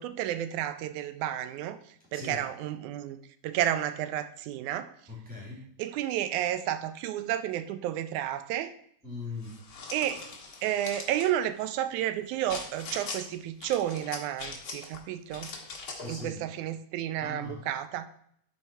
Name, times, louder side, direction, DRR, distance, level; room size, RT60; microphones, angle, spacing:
voice 1, 0.0-1.8 2.1-3.2 3.4-4.9 5.8-8.7 9.9-10.2 10.6-15.5 16.1-18.1, right 12 dB, 80° right, 11 dB, 2.0 m, -31 dB
voice 2, 5.1-5.6 9.0-9.6 15.9-16.4 17.2-17.6, left 3 dB, 5° right, -6 dB, 2.7 m, -40 dB
sound 1, 9.4-11.3 12.5-13.2 13.6-15.0 15.3-16.1, left 4 dB, 75° left, 0.8 m, -41 dB
12.0 x 4.3 x 4.4 m, 0.67 s
omnidirectional pair, 3.6 m